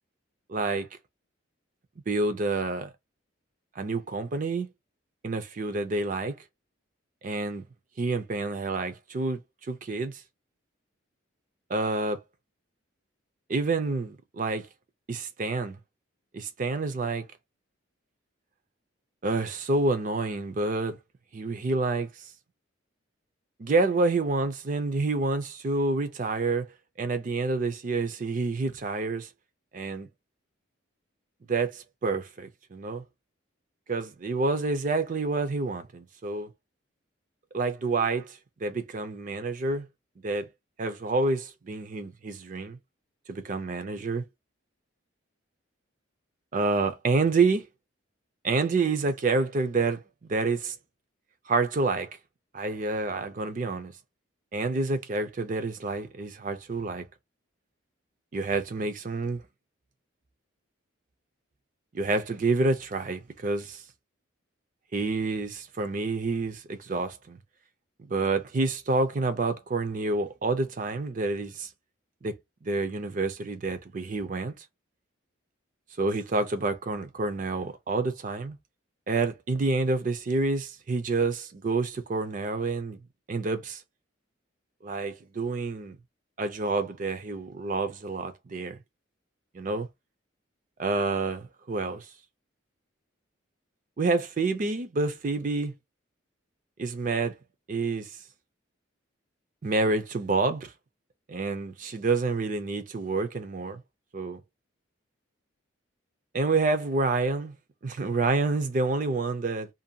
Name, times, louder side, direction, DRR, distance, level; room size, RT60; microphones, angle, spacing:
voice 1, 0.5-0.9 2.1-2.9 3.8-4.7 5.2-6.4 7.2-7.6 8.0-9.4 9.7-10.2 11.7-12.2 13.5-14.7 15.1-15.8 16.3-17.2 19.2-21.0 21.3-22.1 23.6-26.7 27.0-29.3 29.7-30.1 31.5-33.0 33.9-36.5 37.5-39.9 40.2-40.5 40.8-42.8 43.3-44.2 46.5-47.7 48.4-50.7 51.5-52.1 52.5-53.9 54.5-57.1 58.3-59.4 61.9-63.8 64.9-67.4 68.1-71.7 72.2-72.4 72.6-74.5 76.0-78.6 79.1-83.0 83.3-83.8 84.8-86.0 86.4-88.8 89.5-89.9 90.8-92.1 94.0-95.7 96.8-97.4 97.7-98.1 99.6-100.7 101.3-103.8 104.1-104.4 106.3-107.5 107.8-109.7, right 3 dB, 40° right, 0.4 m, -28 dB
2.6 x 2.2 x 2.7 m
head